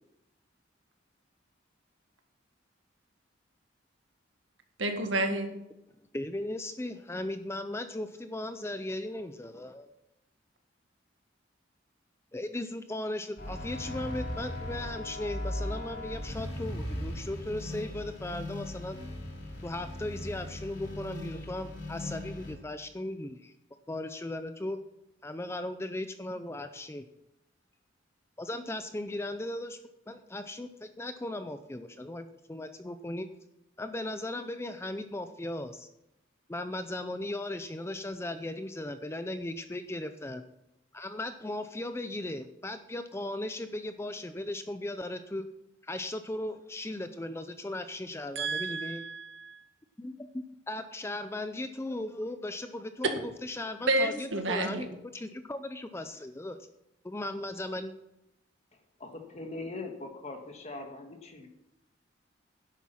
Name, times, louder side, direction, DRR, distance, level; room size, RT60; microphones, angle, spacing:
voice 1, 4.8-5.5 48.3-49.6 53.9-54.9, right 2 dB, 80° right, 5 dB, 1.8 m, -30 dB
voice 2, 6.1-9.9 12.3-19.0 19.6-23.5 23.9-24.8 25.2-27.0 28.4-29.8 30.1-33.3 33.8-35.9 36.5-40.4 40.9-45.4 45.8-49.0 50.0-54.9 55.1-56.6 57.0-57.9, left 1 dB, 15° left, 9 dB, 0.5 m, -37 dB
sound 1, 13.4-22.5, left 1 dB, 65° left, 3.0 m, -38 dB
voice 3, 59.0-61.5, left 2 dB, 35° left, 4 dB, 1.6 m, -41 dB
11.0 x 8.3 x 5.7 m, 0.88 s
head